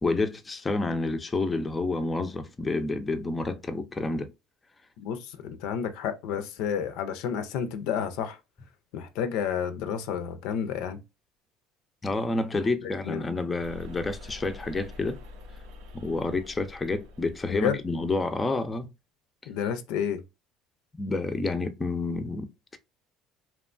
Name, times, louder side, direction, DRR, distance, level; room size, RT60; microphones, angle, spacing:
voice 1, 0.0-4.3 12.0-15.2 15.9-18.9 21.0-22.8, left 3 dB, 20° left, 0.4 m, -29 dB
voice 2, 5.0-8.4 8.9-11.0 12.8-13.2 17.5-17.8 19.5-20.2, left 8 dB, 80° left, 0.4 m, -30 dB
sound 1, 13.6-18.1, left 2 dB, 85° right, 0.5 m, -46 dB
2.9 x 2.2 x 2.4 m
cardioid pair, 115°, 0 cm